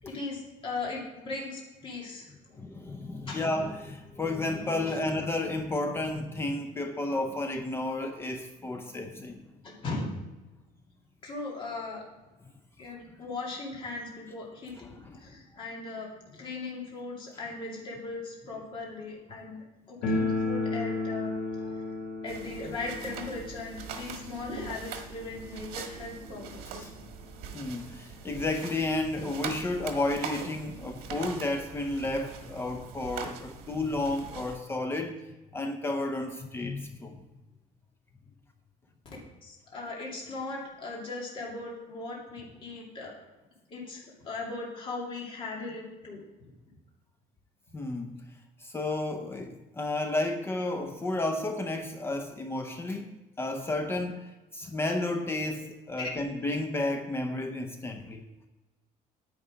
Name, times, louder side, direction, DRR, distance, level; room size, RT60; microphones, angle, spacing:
voice 1, 0.0-2.3 3.3-3.4 9.6-10.3 11.2-12.0 12.8-14.9 15.2-21.3 21.6-21.7 22.2-26.9 39.4-43.1 43.7-46.2, left 3 dB, 35° left, 2.4 m, -38 dB
voice 2, 2.5-9.4 14.9-15.3 26.8-26.9 27.5-35.2 35.5-37.3 47.7-48.3 48.6-58.2, left 2 dB, 15° left, 0.5 m, -32 dB
sound 1, 20.0-26.7 27.0-27.1 27.3-27.4 28.2-28.3 28.6-29.8, left 2 dB, 85° left, 2.6 m, -34 dB
sound 2, 22.3-34.6, right 6 dB, 80° right, 1.6 m, -42 dB
9.5 x 8.7 x 5.0 m
cardioid pair, 175°, 16 cm